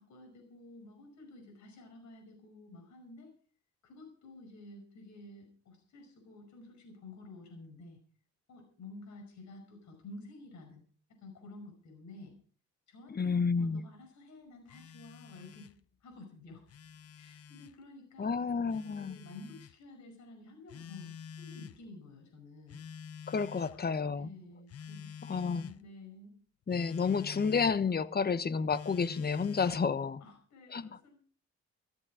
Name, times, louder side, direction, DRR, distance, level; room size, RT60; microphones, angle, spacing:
voice 1, 0.0-3.3 3.8-8.0 8.5-10.8 11.2-12.3 12.9-15.7 16.0-16.7 17.2-21.1 21.4-22.8 23.6-23.8 24.2-26.3 30.2-31.2, left 2 dB, 70° left, 5.6 m, -51 dB
voice 2, 13.1-13.8 18.2-19.2 23.3-24.3 25.3-25.7 26.7-30.2 30.7-31.0, left 5 dB, 30° left, 1.1 m, -30 dB
Telephone, 14.7-15.8 16.5-17.7 18.7-19.7 20.7-21.8 22.7-23.8 24.7-25.8 26.7-27.8 28.7-29.8, left 7 dB, 50° left, 1.0 m, -47 dB
15.0 x 14.0 x 4.9 m
cardioid pair, 90°, 30 cm